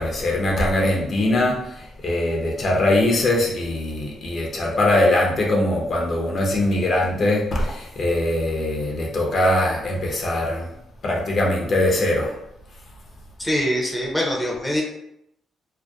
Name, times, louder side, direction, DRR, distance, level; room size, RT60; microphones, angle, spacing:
voice 1, 0.0-1.6 2.0-10.7 11.0-12.3, left 1 dB, 50° left, -2 dB, 0.6 m, -21 dB
voice 2, 13.4-14.8, equal, 5° left, -2 dB, 0.6 m, -23 dB
2.6 x 2.1 x 2.3 m, 0.80 s
cardioid pair, 90°, 0 cm